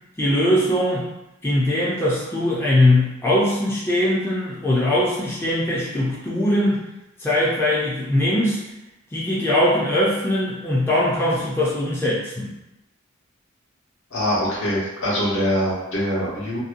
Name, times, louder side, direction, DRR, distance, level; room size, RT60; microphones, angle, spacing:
voice 1, 0.2-1.1 1.4-6.8 7.2-8.6 9.1-12.5, left 1 dB, 10° left, -7 dB, 0.4 m, -21 dB
voice 2, 14.1-16.6, equal, 65° left, -7 dB, 1.0 m, -23 dB
2.7 x 2.1 x 2.5 m, 0.94 s
head